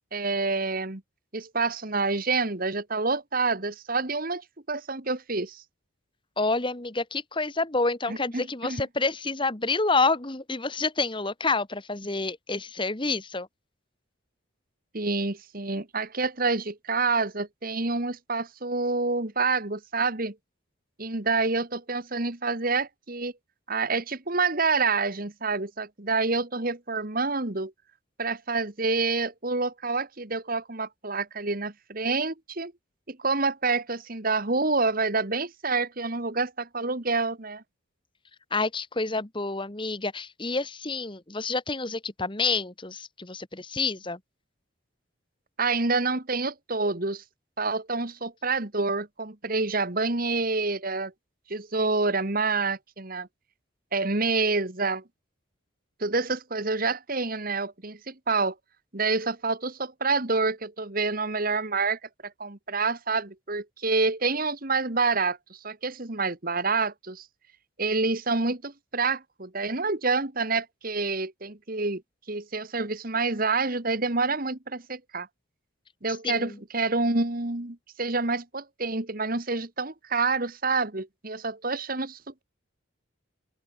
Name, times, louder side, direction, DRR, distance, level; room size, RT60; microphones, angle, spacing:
voice 1, 0.1-1.0 1.3-5.6 8.1-8.8 14.9-20.3 21.0-23.3 23.7-27.7 28.2-32.7 33.1-37.6 45.6-47.2 47.6-51.1 51.5-53.3 53.9-55.0 56.0-58.5 58.9-62.0 62.4-67.2 67.8-72.0 72.3-75.3 76.0-82.4, right 3 dB, 40° right, 1.7 m, -27 dB
voice 2, 6.4-13.5 38.5-44.2 76.2-76.6, left 3 dB, 25° left, 1.3 m, -28 dB
open air
head